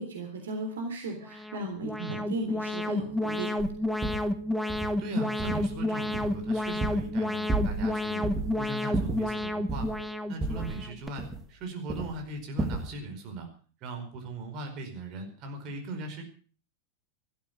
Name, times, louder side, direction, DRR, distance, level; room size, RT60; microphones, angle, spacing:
voice 1, 0.0-3.5, right 3 dB, 65° right, 4 dB, 3.3 m, -36 dB
Alarm, 1.2-11.1, left 1 dB, ahead, 1.2 m, -31 dB
sound 1, 2.1-10.2, left 1 dB, 45° left, 4.6 m, -48 dB
sound 2, 3.6-3.7 4.0-4.3 4.7-5.0 5.4-5.8 6.1-7.2 7.5-7.9 8.2-8.5 8.9-10.0 10.4-11.6 11.9-12.2 12.6-12.9, right 3 dB, 15° right, 2.3 m, -33 dB
voice 2, 5.0-8.2 8.6-9.9 10.3-13.5 13.8-16.2, right 2 dB, 40° right, 4 dB, 4.8 m, -39 dB
14.5 x 13.0 x 6.9 m, 0.42 s
figure-of-eight pair, 90°, 0 cm